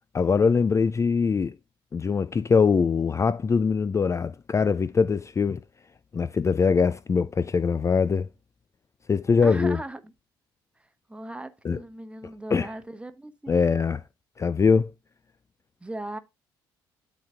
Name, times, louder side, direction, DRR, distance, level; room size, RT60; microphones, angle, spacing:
voice 1, 0.1-1.6 1.9-5.6 6.1-8.3 9.1-9.8 11.6-11.8 12.5-12.7 13.5-14.0 14.4-14.9, left 5 dB, 25° left, 0.4 m, -22 dB
voice 2, 9.4-10.1 10.8-13.7 15.8-16.2, right 1 dB, 10° right, 1.2 m, -38 dB
11.5 x 4.1 x 3.5 m
figure-of-eight pair, 50°, 12 cm